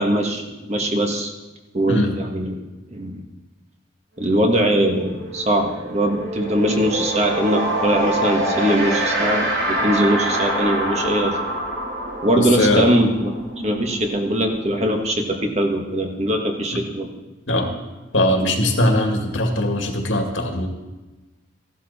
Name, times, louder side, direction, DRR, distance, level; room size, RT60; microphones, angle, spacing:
voice 1, 0.0-1.3 1.7-2.6 2.9-3.2 4.2-11.4 12.2-13.3 13.6-17.1, right 1 dB, 35° right, 3 dB, 1.4 m, -21 dB
sound 1, 4.5-4.6 4.9-15.5, right 1 dB, 80° right, 3.3 m, -26 dB
voice 2, 12.4-12.9 16.7-16.8 17.5-17.7 18.1-20.7, left 1 dB, 80° left, 2 dB, 2.2 m, -20 dB
15.5 x 12.0 x 4.2 m, 1.1 s
head